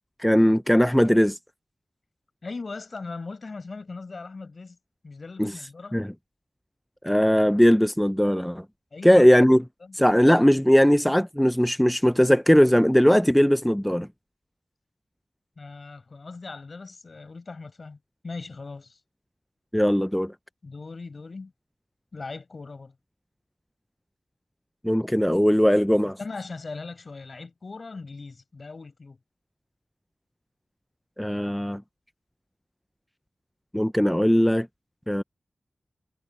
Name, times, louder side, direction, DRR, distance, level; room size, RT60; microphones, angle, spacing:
voice 1, 0.2-1.4 5.4-5.5 5.9-6.1 7.0-8.6 9.0-9.6 9.9-14.1 19.7-20.3 24.8-26.2 31.2-31.8 33.7-34.7 35.1-35.2, equal, 5° left, 0.4 m, -19 dB
voice 2, 2.4-4.8 5.0-6.0 8.9-9.3 9.8-10.0 15.6-18.0 18.2-19.0 20.6-21.5 22.1-23.0 26.2-29.2, left 3 dB, 55° left, 5.5 m, -39 dB
wide cardioid pair, 90°, 0 cm